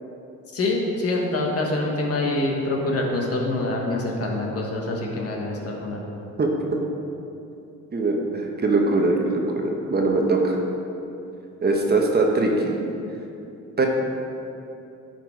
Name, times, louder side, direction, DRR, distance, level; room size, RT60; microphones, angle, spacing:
voice 1, 0.5-6.0, left 2 dB, 50° left, -1 dB, 1.5 m, -25 dB
voice 2, 7.9-10.6 11.6-12.7 13.8-13.9, right 3 dB, 35° right, 1 dB, 1.1 m, -21 dB
10.5 x 4.5 x 4.6 m, 2.8 s
cardioid pair, 90°, 30 cm